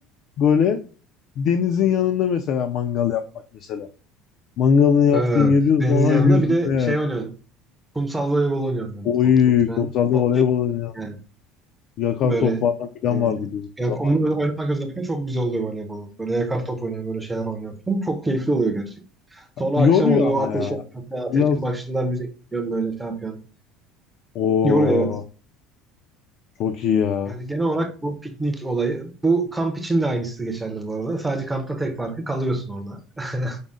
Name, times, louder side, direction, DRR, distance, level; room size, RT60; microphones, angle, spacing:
voice 1, 0.4-0.8 1.4-3.2 3.7-3.9 4.6-7.0 9.1-10.9 12.0-14.1 19.8-20.8 21.3-21.6 24.3-25.2 26.6-27.4, left 7 dB, 45° left, 7 dB, 0.3 m, -20 dB
voice 2, 5.1-7.3 7.9-9.1 9.7-10.4 11.0-11.2 12.2-12.6 13.1-13.5 13.8-18.9 19.3-23.4 24.6-25.1 27.3-33.6, right 2 dB, 5° right, 5 dB, 0.5 m, -25 dB
5.2 x 2.0 x 3.6 m, 0.37 s
cardioid pair, 165°, 0 cm